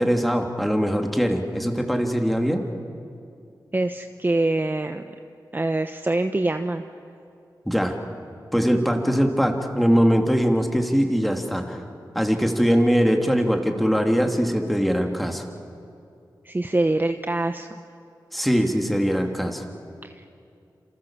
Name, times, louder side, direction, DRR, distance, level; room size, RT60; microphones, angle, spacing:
voice 1, 0.0-2.6 7.7-7.9 8.5-11.8 12.1-15.4 18.3-19.6, equal, ahead, 3 dB, 2.7 m, -21 dB
voice 2, 3.7-5.0 5.5-6.8 16.4-17.8 20.0-20.3, right 2 dB, 25° right, 7 dB, 0.9 m, -24 dB
27.5 x 27.5 x 7.4 m, 2.5 s
cardioid pair, 65°, 8 cm